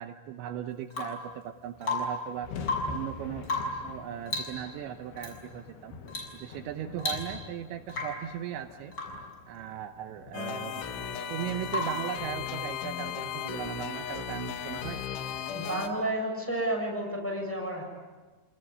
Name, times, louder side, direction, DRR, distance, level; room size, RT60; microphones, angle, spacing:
voice 1, 0.0-2.5 2.9-3.5 3.8-6.0 6.4-8.9 9.5-10.9 11.3-15.0, right 10 dB, 75° right, 7 dB, 3.1 m, -38 dB
Rain / Water tap faucet / Drip, 0.9-1.3 1.8-2.3 2.6-3.0 3.4-3.9 4.3-4.6 5.2-5.4 6.1-6.4 6.6-6.7 7.0-7.6 7.9-8.3 8.9-9.3 11.7-12.1 14.0-14.1, left 2 dB, 20° left, 7.0 m, -33 dB
sound 1, 1.3-1.4 1.6-15.9, left 5 dB, 60° left, 3.9 m, -47 dB
sound 2, 10.3-15.9, left 8 dB, 80° left, 4.1 m, -36 dB
voice 2, 15.5-17.8, right 1 dB, 5° left, 0 dB, 6.6 m, -31 dB
28.5 x 20.5 x 9.9 m, 1.3 s
omnidirectional pair, 5.4 m